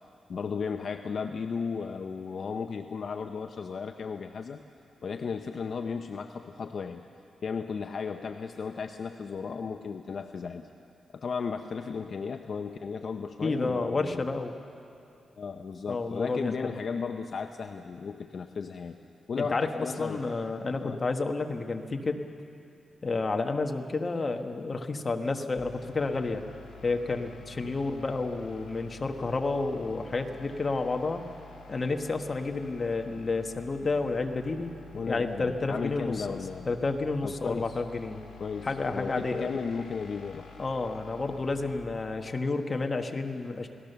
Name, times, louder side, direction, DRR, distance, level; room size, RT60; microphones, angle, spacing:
voice 1, 0.3-4.6 5.0-7.0 7.4-10.7 11.1-14.3 15.4-19.0 19.3-20.2 20.8-21.0 34.9-36.7 37.2-37.8 38.4-40.5, left 5 dB, 55° left, 6 dB, 0.7 m, -35 dB
voice 2, 13.4-14.5 15.9-16.7 19.4-22.2 23.0-26.4 26.8-31.3 31.7-34.7 35.1-36.4 36.6-38.2 38.6-39.5 40.6-43.7, left 3 dB, 30° left, 4 dB, 1.4 m, -30 dB
sound 1, 25.6-41.8, left 4 dB, 75° left, 3.1 m, -49 dB
29.5 x 18.0 x 6.9 m, 2.7 s
wide cardioid pair, 125°, 0 cm